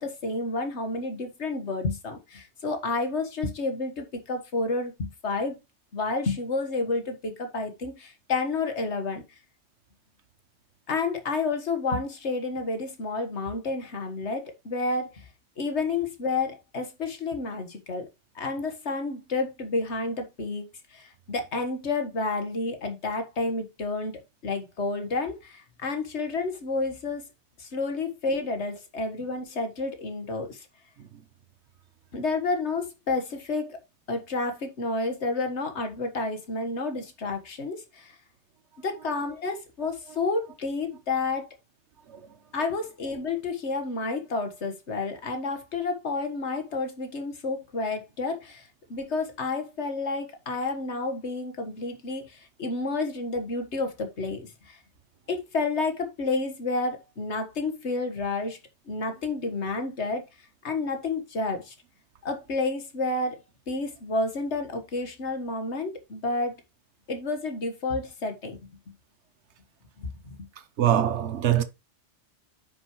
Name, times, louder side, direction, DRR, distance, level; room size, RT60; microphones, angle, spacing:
voice 1, 0.0-5.6 5.9-9.2 10.9-15.3 15.6-18.1 18.4-27.2 27.6-30.7 32.1-33.8 34.1-38.2 38.8-41.5 42.5-54.8 55.3-58.6 58.9-60.2 60.6-61.7 62.2-63.4 63.7-66.6 67.1-68.6 70.0-70.4, left 3 dB, 70° left, 1.8 m, -30 dB
voice 2, 70.8-71.6, right 11 dB, 70° right, 1.2 m, -23 dB
9.7 x 6.3 x 3.1 m
omnidirectional pair, 1.2 m